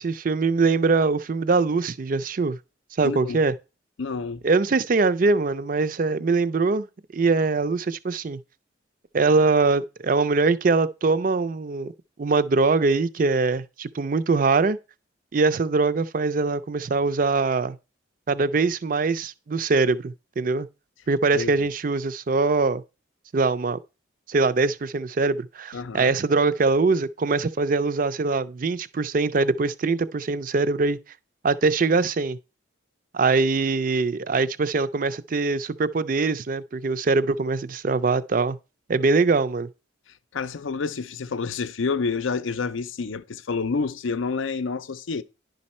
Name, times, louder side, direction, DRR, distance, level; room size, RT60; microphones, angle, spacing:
voice 1, 0.0-2.6 3.0-3.5 4.4-6.9 7.1-8.4 9.1-11.9 12.2-14.8 15.3-17.8 18.3-20.7 21.1-22.8 23.3-23.8 24.3-31.0 31.4-32.4 33.1-38.6 38.9-39.7, right 3 dB, 45° right, 0.4 m, -22 dB
voice 2, 3.0-3.4 4.0-4.4 21.3-21.5 25.7-26.1 40.3-45.2, left 4 dB, 80° left, 0.5 m, -28 dB
10.5 x 5.3 x 4.2 m
head